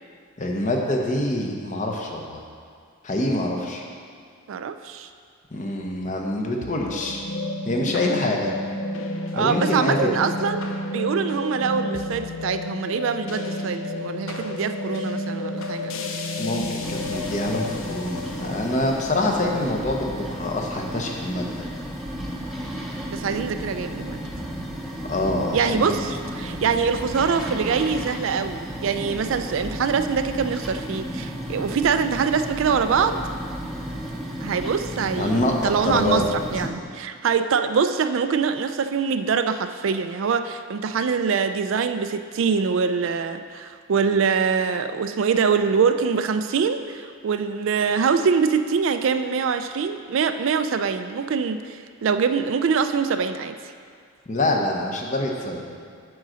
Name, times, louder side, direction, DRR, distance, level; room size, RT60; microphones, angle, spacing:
voice 1, 0.4-2.4 3.0-3.8 5.5-7.2 7.7-8.5 9.4-10.1 16.4-21.6 25.1-26.1 35.2-36.2 54.3-55.6, left 1 dB, 35° left, 1 dB, 0.9 m, -25 dB
voice 2, 4.5-5.1 9.3-10.6 10.9-15.9 23.1-24.2 25.5-33.2 34.4-36.2 36.5-53.6, right 6 dB, 65° right, 9 dB, 0.4 m, -24 dB
sound 1, 6.6-21.0, left 1 dB, 65° left, 0.7 m, -31 dB
sound 2, 16.8-36.7, equal, ahead, 0.8 m, -33 dB
9.5 x 3.9 x 6.2 m, 2.2 s
head